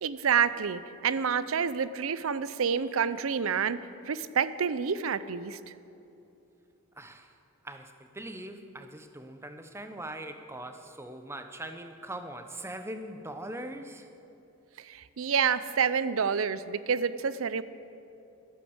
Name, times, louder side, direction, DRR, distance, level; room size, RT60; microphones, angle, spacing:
voice 1, 0.0-5.7 14.8-17.6, right 7 dB, 70° right, 16 dB, 0.5 m, -28 dB
voice 2, 7.0-7.3 7.6-14.1, right 1 dB, 10° right, 8 dB, 0.8 m, -41 dB
12.5 x 12.0 x 7.9 m, 2.9 s
head